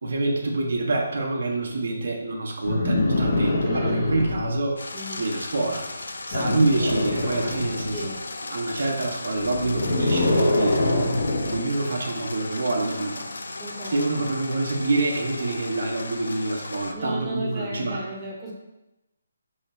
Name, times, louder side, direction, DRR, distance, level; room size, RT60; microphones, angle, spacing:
voice 1, 0.0-4.8 5.2-6.0 6.3-8.1 8.5-10.7 11.5-13.2 13.8-18.0, right 2 dB, 65° right, 0 dB, 0.7 m, -26 dB
sound 1, 2.6-4.6 6.3-8.0 9.3-11.6 13.0-13.1, left 1 dB, 50° left, 0.7 m, -24 dB
voice 2, 3.6-4.4 4.9-5.2 6.3-6.6 7.9-8.2 10.4-11.0 11.3-12.0 13.6-14.0 16.9-18.5, right 1 dB, 15° right, -5 dB, 0.8 m, -35 dB
sound 2, 4.8-16.9, left 2 dB, 85° left, 0.4 m, -36 dB
3.2 x 2.9 x 4.2 m, 0.96 s
hypercardioid pair, 165°, 0 cm